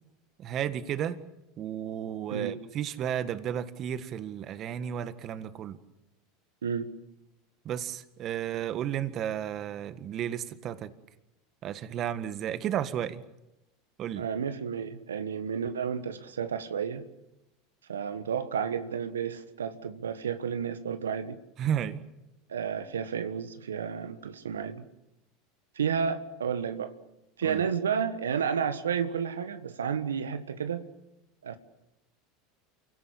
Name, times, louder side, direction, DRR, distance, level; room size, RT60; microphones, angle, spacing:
voice 1, 0.4-1.2 1.6-5.8 7.6-10.9 11.6-13.2 14.0-14.2 21.6-22.0 27.4-27.6, right 10 dB, 45° right, 1.7 m, -33 dB
voice 2, 14.2-17.1 17.9-21.4 22.5-24.8 25.7-26.9 27.4-30.8 31.4-31.6, right 7 dB, 85° right, 1.4 m, -31 dB
28.5 x 17.5 x 8.7 m
hypercardioid pair, 85°, 0 cm